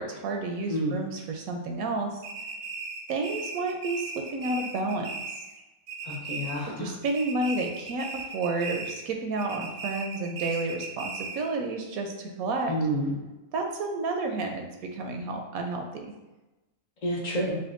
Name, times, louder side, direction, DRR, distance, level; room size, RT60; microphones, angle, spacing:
voice 1, 0.0-2.2 3.1-5.1 6.8-12.7 13.5-16.1, right 3 dB, 80° right, 3 dB, 1.0 m, -31 dB
sound 1, 2.2-5.6 5.9-6.8 7.0-9.1 9.4-11.5, right 4 dB, 65° right, 0.6 m, -37 dB
voice 2, 6.0-6.9 12.7-13.2 17.0-17.6, equal, 60° left, -5 dB, 0.4 m, -29 dB
5.1 x 2.1 x 2.5 m, 1.1 s
omnidirectional pair, 1.5 m